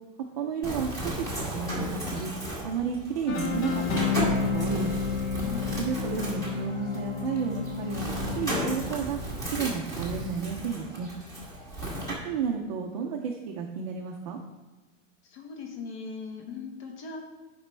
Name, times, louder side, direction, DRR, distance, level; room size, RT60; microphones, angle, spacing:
voice 1, 0.3-2.3 2.6-4.9 5.8-9.2 9.5-11.1 12.2-14.4, right 6 dB, 30° right, 1 dB, 0.3 m, -32 dB
Bird, 0.6-12.1, right 1 dB, 10° left, 1.1 m, -35 dB
sound 1, 3.3-9.2, left 6 dB, 75° left, 1.1 m, -31 dB
voice 2, 5.4-6.2 15.2-17.2, left 4 dB, 60° left, 2 dB, 1.4 m, -40 dB
11.0 x 5.2 x 3.2 m, 1.2 s
supercardioid pair, 170°, 40 cm